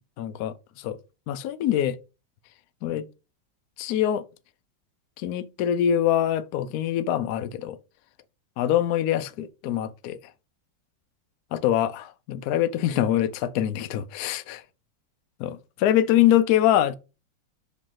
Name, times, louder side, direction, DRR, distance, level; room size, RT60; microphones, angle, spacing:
voice 1, 0.2-1.0 1.3-2.0 2.8-3.1 3.8-4.2 5.2-7.8 8.6-10.2 11.5-14.6 15.4-16.9, left 11 dB, 75° left, 0.9 m, -24 dB
5.1 x 3.3 x 5.6 m
omnidirectional pair, 2.1 m